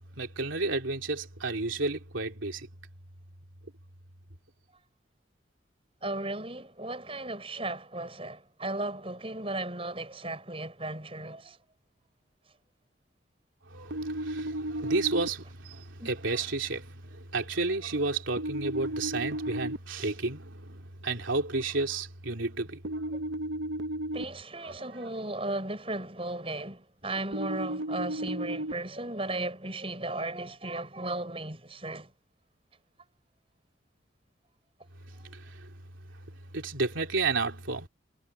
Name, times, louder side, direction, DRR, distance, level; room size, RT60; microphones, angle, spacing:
voice 1, 0.2-2.7 13.7-23.0 24.6-24.7 35.3-35.7 36.5-37.9, right 3 dB, 90° right, 3.2 m, -32 dB
voice 2, 6.0-11.6 16.0-16.1 24.1-32.1, right 2 dB, 30° right, 7.0 m, -35 dB
sound 1, 13.9-15.3 18.4-19.8 22.8-24.2 27.3-28.7, right 1 dB, 65° right, 0.9 m, -33 dB
head